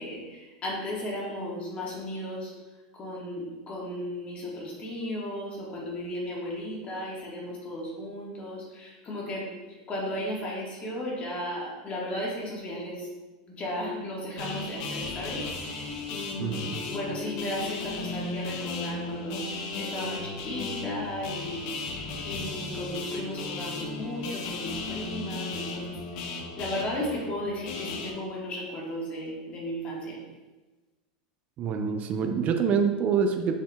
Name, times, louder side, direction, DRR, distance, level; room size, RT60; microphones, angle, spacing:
voice 1, 0.0-2.5 3.0-9.5 9.9-13.1 13.5-19.4 19.8-25.9 26.6-30.2, left 1 dB, 30° left, -4 dB, 1.5 m, -35 dB
sound 1, 14.4-28.1, left 3 dB, 65° left, 0.7 m, -36 dB
voice 2, 16.4-16.9 31.6-33.5, right 6 dB, 35° right, 6 dB, 0.5 m, -26 dB
6.3 x 3.7 x 2.3 m, 1.2 s
supercardioid pair, 125°, 4 cm